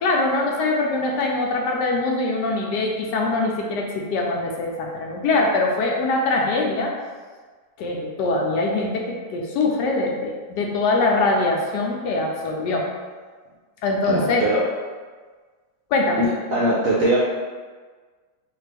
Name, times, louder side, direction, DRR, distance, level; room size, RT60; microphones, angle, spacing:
voice 1, 0.0-6.9 7.8-12.9 13.8-14.4 15.9-16.2, left 2 dB, 75° left, 0 dB, 1.1 m, -23 dB
voice 2, 14.1-14.6 16.2-17.2, right 1 dB, 70° right, -5 dB, 0.8 m, -21 dB
4.3 x 2.4 x 3.3 m, 1.5 s
omnidirectional pair, 2.0 m